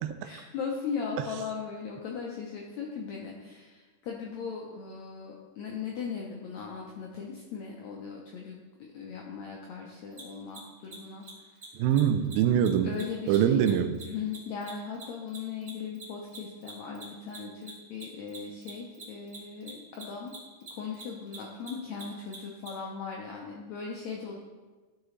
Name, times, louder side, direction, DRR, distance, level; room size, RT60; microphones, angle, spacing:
voice 1, 0.2-11.6 12.8-13.7 14.0-20.3 20.7-24.4, left 6 dB, 80° left, -1 dB, 1.6 m, -38 dB
Mechanisms, 10.1-10.2 10.5-10.6 10.8-11.0 11.2-11.3 11.6-11.7 11.9-12.0 12.2-12.3 12.6-15.4 15.6-22.7, right 5 dB, 55° right, 0.9 m, -46 dB
voice 2, 11.8-12.9 13.3-14.0, right 9 dB, 90° right, 9 dB, 2.3 m, -24 dB
11.0 x 4.8 x 3.1 m, 1.3 s
omnidirectional pair, 4.0 m